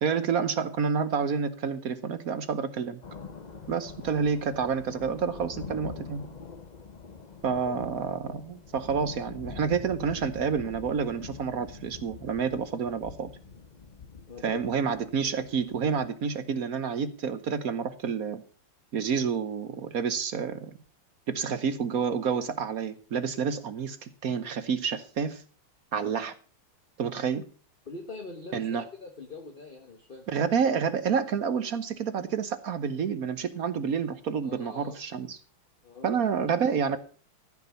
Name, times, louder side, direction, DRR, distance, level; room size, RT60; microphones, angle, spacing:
voice 1, 0.0-3.0 3.7-6.3 7.4-13.3 14.4-18.4 18.9-20.7 21.3-25.4 25.9-26.3 27.0-27.4 28.5-28.8 30.3-35.4 36.0-37.0, right 6 dB, 55° right, 12 dB, 1.0 m, -29 dB
Thunder, 3.0-16.1, left 5 dB, 65° left, 0.4 m, -45 dB
voice 2, 14.3-14.7 27.8-30.3 34.4-35.0 35.8-36.2, left 3 dB, 25° left, 4 dB, 1.4 m, -43 dB
14.5 x 6.1 x 6.9 m, 0.38 s
omnidirectional pair, 2.4 m